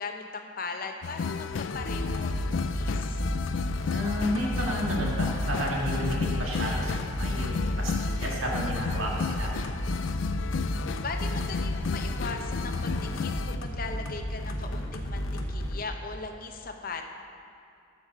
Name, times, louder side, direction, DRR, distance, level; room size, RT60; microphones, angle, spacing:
voice 1, 0.0-3.2 11.0-17.0, left 4 dB, 45° left, 4 dB, 0.8 m, -39 dB
sound 1, 1.0-13.6, left 5 dB, 65° left, 0.3 m, -33 dB
sound 2, 1.7-15.8, equal, 85° left, 1.0 m, -33 dB
voice 2, 3.9-9.5, equal, 85° right, -3 dB, 2.1 m, -32 dB
13.0 x 6.6 x 5.5 m, 2.4 s
head